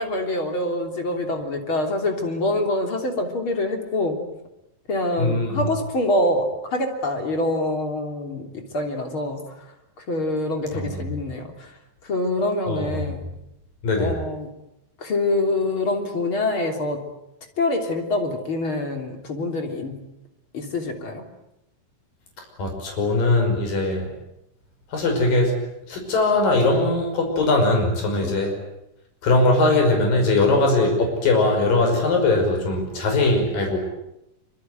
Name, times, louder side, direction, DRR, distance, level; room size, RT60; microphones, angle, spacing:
voice 1, 0.0-4.2 4.9-9.7 10.0-11.7 12.0-13.2 14.0-14.5 15.0-17.0 17.6-19.9 20.5-21.2 28.2-28.3, left 2 dB, 35° left, 4 dB, 3.9 m, -25 dB
voice 2, 5.2-5.6 10.7-11.0 12.7-13.0 13.8-14.1 22.6-24.1 24.9-25.5 25.9-28.5 29.2-33.8, left 2 dB, 75° left, 3 dB, 7.4 m, -20 dB
25.5 x 25.0 x 9.2 m, 0.86 s
omnidirectional pair, 4.0 m